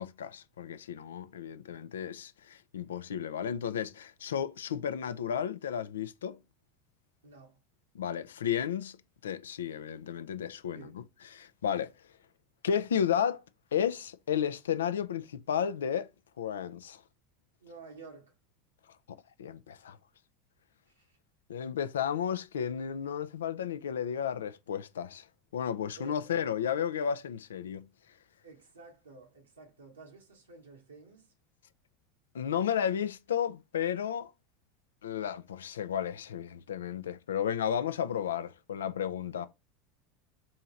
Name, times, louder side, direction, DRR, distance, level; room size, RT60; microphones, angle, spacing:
voice 1, 0.0-6.4 7.9-9.0 9.2-11.0 11.3-11.9 12.6-13.4 13.7-16.1 16.4-17.0 19.4-20.0 21.5-25.3 25.5-27.9 32.3-34.3 35.0-39.5, left 8 dB, 80° left, 0.4 m, -33 dB
voice 2, 7.2-7.6 10.7-11.0 17.6-18.4 20.9-21.2 26.0-26.3 26.7-26.9 28.4-31.3 39.3-39.5, right 3 dB, 90° right, 1.2 m, -52 dB
3.7 x 2.8 x 4.4 m
hypercardioid pair, 80°, 0 cm